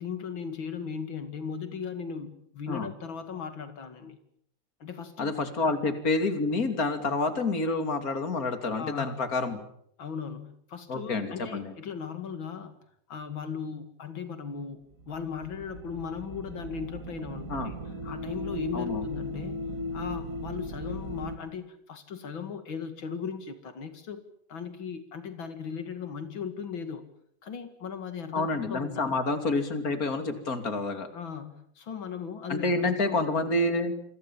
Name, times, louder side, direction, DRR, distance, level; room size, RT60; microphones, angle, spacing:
voice 1, 0.0-4.2 4.8-5.3 5.6-5.7 8.8-9.2 10.0-12.8 13.1-17.8 18.0-19.6 19.9-24.2 24.5-27.1 27.4-29.1 31.1-33.1, left 6 dB, 90° left, 9 dB, 2.9 m, -37 dB
voice 2, 5.2-9.6 10.9-11.7 17.5-17.7 18.7-19.1 28.3-31.1 32.5-33.9, left 2 dB, 45° left, 8 dB, 3.3 m, -28 dB
sound 1, 14.9-21.4, left 1 dB, 45° right, 2.7 m, -37 dB
28.0 x 22.5 x 7.3 m, 0.69 s
omnidirectional pair, 2.1 m